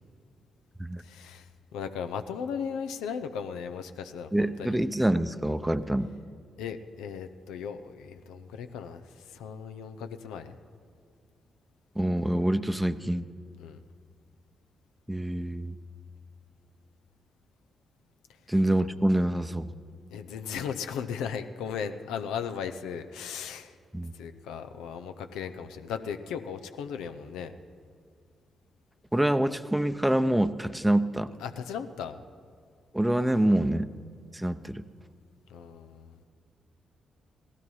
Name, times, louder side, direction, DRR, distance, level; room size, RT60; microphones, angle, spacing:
voice 1, 1.0-4.8 6.6-10.6 13.6-13.8 20.1-23.7 24.1-27.5 31.4-32.2 35.5-36.2, left 7 dB, 80° left, 8 dB, 0.6 m, -37 dB
voice 2, 4.3-6.1 12.0-13.3 15.1-15.7 18.5-19.7 23.9-24.1 29.1-31.3 32.9-33.9 34.3-34.8, right 1 dB, 5° right, 12 dB, 0.7 m, -26 dB
16.5 x 12.5 x 5.5 m, 2.2 s
hypercardioid pair, 45°, 0 cm